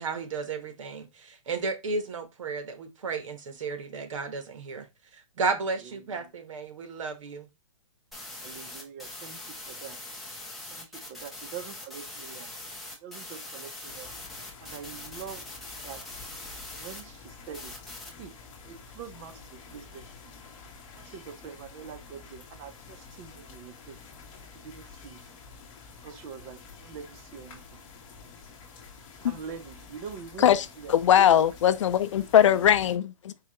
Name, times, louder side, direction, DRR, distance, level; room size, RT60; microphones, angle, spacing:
voice 1, 0.0-4.9 5.1-7.5, right 4 dB, 70° right, 1.3 m, -33 dB
voice 2, 5.8-6.3 8.4-10.0 10.7-12.5 12.9-14.1 14.6-15.5 15.8-16.0 16.7-17.8 18.2-18.4 18.6-20.4 20.9-24.0 24.5-25.2 26.0-27.8 29.2-31.5 32.2-32.6, right 7 dB, 30° right, 0.7 m, -44 dB
sound 1, 8.1-17.0 17.5-18.1, left 2 dB, ahead, 1.0 m, -42 dB
sound 2, 13.9-33.0, left 4 dB, 25° left, 1.3 m, -49 dB
voice 3, 30.4-33.4, left 10 dB, 60° left, 0.5 m, -21 dB
4.6 x 2.8 x 3.0 m
hypercardioid pair, 150°, 17 cm